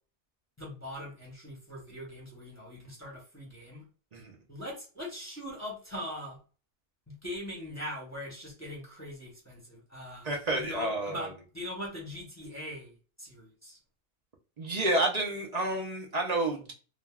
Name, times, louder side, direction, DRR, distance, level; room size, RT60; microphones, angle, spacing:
voice 1, 0.6-3.8 4.5-6.4 7.1-13.8, equal, 15° left, -3 dB, 0.8 m, -41 dB
voice 2, 10.2-11.3 14.6-16.7, right 1 dB, 50° right, 0 dB, 0.5 m, -30 dB
3.3 x 2.2 x 2.3 m, 0.36 s
omnidirectional pair, 1.5 m